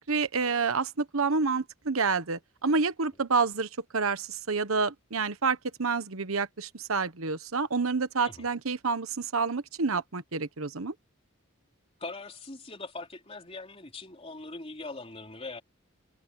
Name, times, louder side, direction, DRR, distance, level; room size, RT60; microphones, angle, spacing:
voice 1, 0.1-10.9, right 4 dB, 90° right, 1.2 m, -28 dB
voice 2, 12.0-15.6, left 3 dB, 30° left, 3.7 m, -41 dB
head